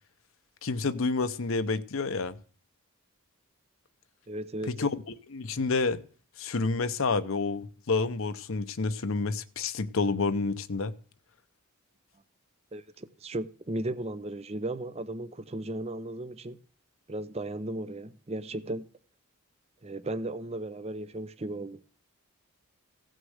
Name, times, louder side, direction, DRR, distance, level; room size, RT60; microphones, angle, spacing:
voice 1, 0.6-2.4 4.7-4.9 5.3-6.0 6.4-10.9, left 3 dB, 65° left, 0.7 m, -29 dB
voice 2, 4.3-4.7 12.7-16.6 17.1-18.9 19.8-21.8, right 1 dB, 30° right, 0.6 m, -35 dB
16.0 x 6.4 x 6.4 m
head